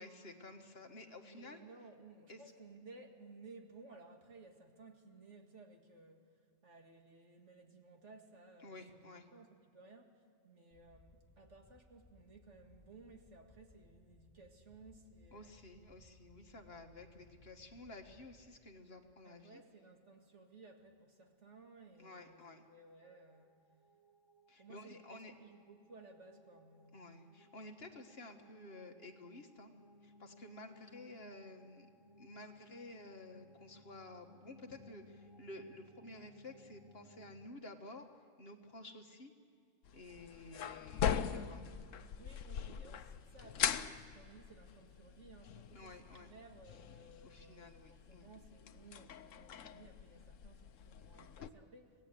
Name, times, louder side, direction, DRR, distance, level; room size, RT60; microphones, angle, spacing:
voice 1, 0.0-1.6 2.3-2.4 8.6-9.3 15.3-19.6 22.0-22.6 24.5-25.3 26.9-29.7 30.0-31.9 32.2-38.0 38.4-39.3 39.9-41.6 45.7-46.3 47.2-48.3, left 2 dB, 50° left, 5 dB, 1.7 m, -52 dB
voice 2, 1.2-15.8 19.2-22.4 22.7-23.5 24.6-27.1 41.3-41.6 42.2-51.9, right 3 dB, 60° right, 3 dB, 2.2 m, -58 dB
sound 1, 10.7-18.5, left 2 dB, 20° left, 5.7 m, -65 dB
sound 2, 21.8-37.5, left 1 dB, 25° right, 0.9 m, -63 dB
sound 3, 39.8-51.5, left 8 dB, 70° left, 1.1 m, -42 dB
26.0 x 18.0 x 8.3 m, 2.2 s
omnidirectional pair, 1.4 m